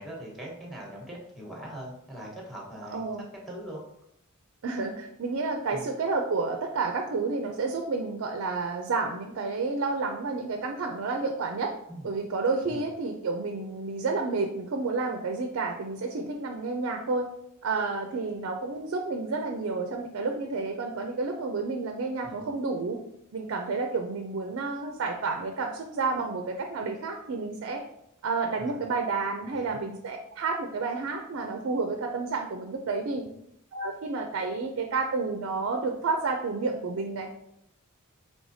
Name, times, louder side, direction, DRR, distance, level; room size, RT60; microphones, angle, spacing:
voice 1, 0.0-3.0 3.4-3.8 5.7-5.8 11.9-12.1 12.6-12.8 22.2-22.5 28.6-28.9 29.4-29.8, equal, ahead, -2 dB, 1.1 m, -41 dB
voice 2, 2.8-3.3 4.6-11.7 12.0-17.3 17.6-23.0 23.3-27.8 28.2-33.3 33.7-37.3, right 3 dB, 60° right, 4 dB, 0.4 m, -30 dB
4.8 x 3.3 x 2.7 m, 0.79 s
head